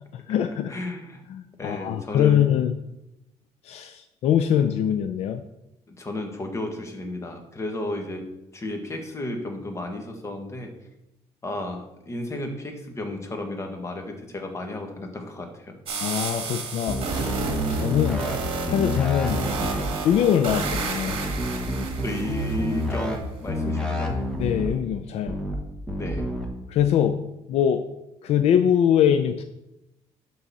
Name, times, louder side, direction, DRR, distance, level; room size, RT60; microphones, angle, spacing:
voice 1, 0.1-0.7 1.3-2.7 3.6-5.4 16.0-18.3 18.7-19.4 20.0-21.2 24.4-25.4 26.7-27.2 27.5-27.8 28.2-29.4, left 9 dB, 65° left, 9 dB, 0.5 m, -23 dB
voice 2, 0.7-1.2 1.6-2.4 5.9-10.7 11.4-15.7 22.0-24.1 26.0-26.3, left 2 dB, 25° left, 4 dB, 1.4 m, -33 dB
sound 1, 15.9-22.8, right 4 dB, 50° right, 1.7 m, -31 dB
sound 2, 16.9-18.4 18.7-19.9 20.5-20.8 21.1-23.2 23.5-24.7 25.3-25.6 25.9-26.5, equal, 5° left, 1.3 m, -28 dB
11.5 x 4.0 x 4.1 m, 0.89 s
cardioid pair, 115°, 12 cm